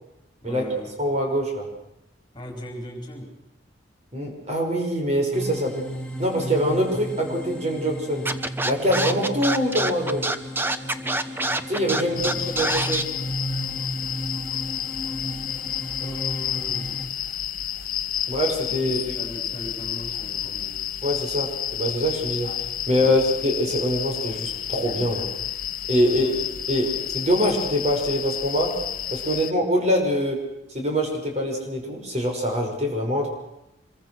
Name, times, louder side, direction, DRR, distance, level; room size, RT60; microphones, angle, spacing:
voice 1, 0.4-1.0 2.3-3.3 12.1-12.8 16.0-17.0 18.7-20.8 23.0-23.2 26.0-26.4 26.8-27.0, equal, 25° left, 2 dB, 4.7 m, -38 dB
voice 2, 1.0-1.7 4.1-5.9 6.2-8.3 8.6-10.3 11.7-13.1 18.3-19.0 21.0-22.5 22.9-25.3 25.9-28.8 29.1-30.4 30.7-33.3, equal, 40° right, 1 dB, 5.7 m, -24 dB
sound 1, 5.3-17.1, equal, 5° left, 2.6 m, -34 dB
Scratching (performance technique), 8.2-13.0, right 2 dB, 10° right, 1.0 m, -25 dB
sound 2, 12.2-29.5, left 10 dB, 50° left, 1.0 m, -31 dB
26.0 x 23.0 x 6.4 m, 0.89 s
head